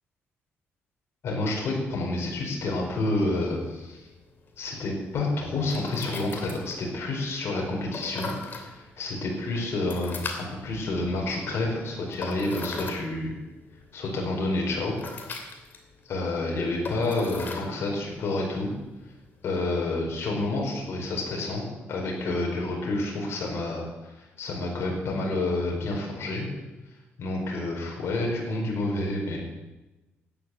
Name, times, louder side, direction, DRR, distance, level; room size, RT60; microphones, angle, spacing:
voice 1, 1.2-4.0 4.6-8.3 8.6-13.3 13.9-14.9 16.0-18.7 19.4-21.6 21.9-26.5 27.2-29.4, left 2 dB, 60° left, -1 dB, 4.8 m, -29 dB
sound 1, 2.2-19.7, left 3 dB, 45° left, 3.0 m, -42 dB
13.0 x 10.0 x 8.0 m, 1.1 s
cardioid pair, 100°, 5 cm